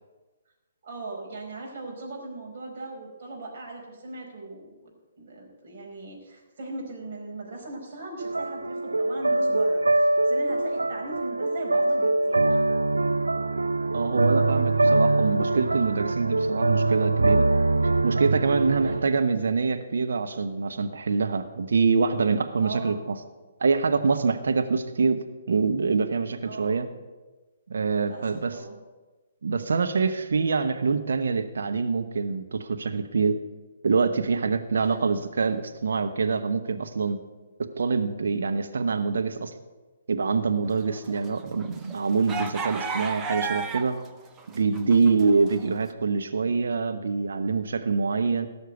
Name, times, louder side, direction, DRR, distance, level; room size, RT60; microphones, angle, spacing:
voice 1, 0.8-4.9 5.2-12.5 18.8-19.2 22.6-23.0 26.4-26.8 27.9-28.8 34.9-35.0 45.2-45.5, right 3 dB, 50° right, -1 dB, 4.9 m, -39 dB
sound 1, 8.2-19.0, right 2 dB, 80° right, 0.6 m, -23 dB
voice 2, 13.9-17.5 18.0-22.9 23.6-25.2 25.5-26.9 27.7-28.6 29.4-33.4 33.8-37.2 37.8-39.5 40.1-44.0 44.5-48.5, right 4 dB, 65° right, 7 dB, 1.1 m, -25 dB
sound 2, 40.9-44.1 44.4-45.7, right 4 dB, 15° right, 0.9 m, -33 dB
17.5 x 6.5 x 8.1 m, 1.2 s
figure-of-eight pair, 130°, 0 cm